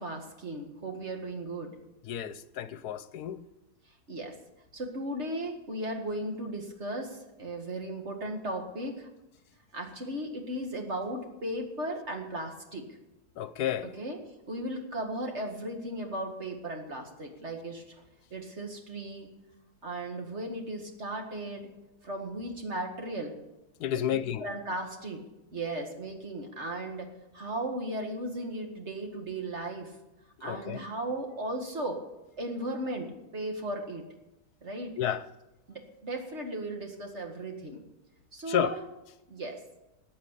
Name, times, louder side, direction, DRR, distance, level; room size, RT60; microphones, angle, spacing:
voice 1, 0.0-1.7 4.1-4.3 4.7-9.1 9.7-12.9 13.8-14.2 14.5-17.8 18.3-19.3 19.8-21.7 22.0-23.3 24.1-25.2 25.5-29.9 30.4-32.0 32.4-34.0 34.6-34.9 35.7-37.8 38.3-38.8 39.3-39.6, right 1 dB, 45° right, 2.3 m, -36 dB
voice 2, 2.1-3.4 13.4-13.9 23.8-24.5 30.4-30.8 35.0-35.2 38.5-38.7, left 10 dB, 80° left, 1.2 m, -31 dB
14.5 x 8.7 x 8.2 m
omnidirectional pair, 1.7 m